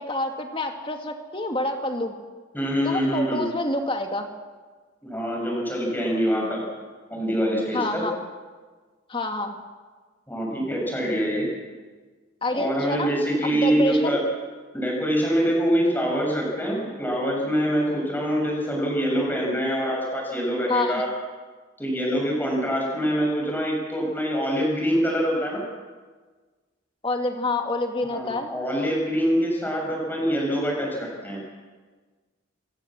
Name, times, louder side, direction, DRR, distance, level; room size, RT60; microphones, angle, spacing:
voice 1, 0.0-2.1 2.8-4.3 7.7-8.2 9.1-9.6 12.4-13.1 13.4-14.2 20.7-21.0 27.0-28.5, left 2 dB, 25° left, 4 dB, 2.2 m, -27 dB
voice 2, 2.5-3.4 5.0-6.6 7.1-8.0 10.3-11.5 12.5-14.2 14.7-21.1 21.8-25.6 28.1-31.4, equal, 10° left, -2 dB, 6.7 m, -25 dB
28.5 x 16.0 x 7.6 m, 1.4 s
head